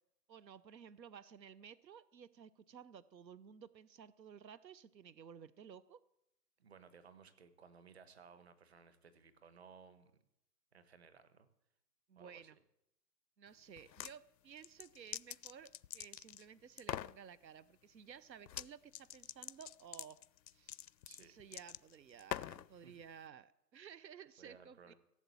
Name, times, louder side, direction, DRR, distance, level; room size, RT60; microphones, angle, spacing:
voice 1, 0.3-6.0 12.1-12.6 13.4-20.2 20.5-20.9 21.2-24.9, right 8 dB, 90° right, 18 dB, 0.8 m, -55 dB
voice 2, 6.6-10.1 10.7-11.5 12.2-12.5 21.1-21.3 22.7-23.0 24.4-24.9, right 6 dB, 40° right, 11 dB, 1.3 m, -60 dB
sound 1, 13.8-14.1 14.6-16.4 16.8-17.2 18.5-18.7 18.9-22.7, left 11 dB, 90° left, 0.6 m, -45 dB
16.0 x 7.3 x 8.4 m, 0.83 s
hypercardioid pair, 170°, 49 cm